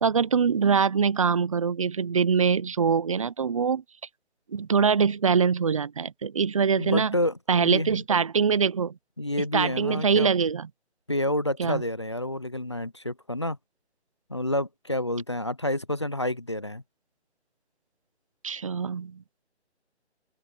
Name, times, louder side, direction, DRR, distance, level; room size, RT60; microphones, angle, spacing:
voice 1, 0.0-3.8 4.5-7.2 7.5-8.9 9.5-10.7 11.6-11.8 18.4-19.2, right 6 dB, 30° right, 0.7 m, -23 dB
voice 2, 6.8-7.9 9.2-10.3 11.1-13.6 14.3-16.8, left 1 dB, 25° left, 0.4 m, -29 dB
open air
figure-of-eight pair, 160°, 34 cm